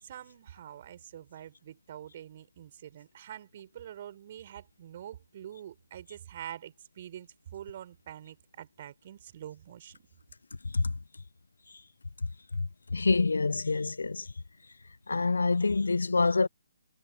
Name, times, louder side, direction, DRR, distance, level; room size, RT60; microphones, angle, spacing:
voice 1, 0.0-10.1, right 10 dB, 40° right, 7.0 m, -46 dB
voice 2, 12.5-14.3 15.1-16.5, left 3 dB, 75° left, 0.9 m, -26 dB
figure-of-eight pair, 140°, 0 cm